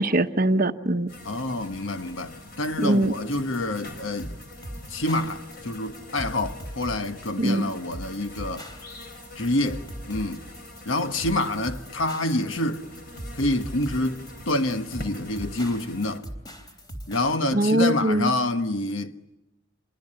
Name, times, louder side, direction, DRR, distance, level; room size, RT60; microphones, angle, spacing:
voice 1, 0.0-1.1 2.8-3.1 7.4-7.7 17.5-18.3, right 1 dB, 40° right, 1.0 m, -22 dB
sound 1, 1.1-16.2, left 1 dB, 45° left, 4.3 m, -44 dB
voice 2, 1.2-4.3 4.9-8.7 9.3-10.4 10.8-12.9 13.4-16.3 17.1-19.1, left 1 dB, 60° left, 1.3 m, -27 dB
sound 2, 3.3-17.3, equal, 20° left, 3.4 m, -40 dB
27.5 x 23.5 x 8.7 m
head